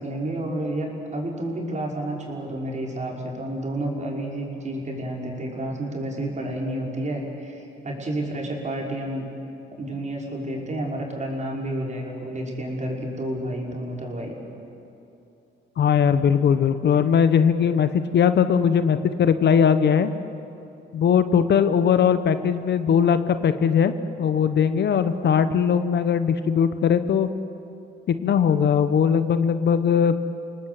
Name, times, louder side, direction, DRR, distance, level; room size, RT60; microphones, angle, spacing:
voice 1, 0.0-9.3 9.7-14.3, right 1 dB, 35° right, -1 dB, 5.6 m, -30 dB
voice 2, 15.8-20.1 20.9-23.9 24.2-27.3 28.1-30.1, left 7 dB, 60° left, 11 dB, 1.2 m, -20 dB
29.5 x 19.0 x 8.4 m, 2.9 s
cardioid pair, 90°, 20 cm